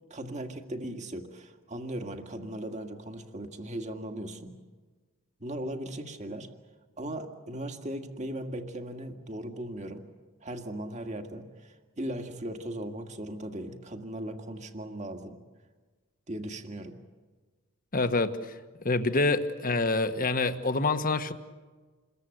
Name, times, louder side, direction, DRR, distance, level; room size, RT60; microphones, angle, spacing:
voice 1, 0.1-4.6 5.4-6.5 7.0-10.1 10.4-15.4 16.3-17.0, right 1 dB, 35° right, 5 dB, 2.0 m, -38 dB
voice 2, 17.9-18.4 18.8-21.3, left 3 dB, 45° left, 9 dB, 1.4 m, -26 dB
28.0 x 22.0 x 8.0 m, 1.4 s
head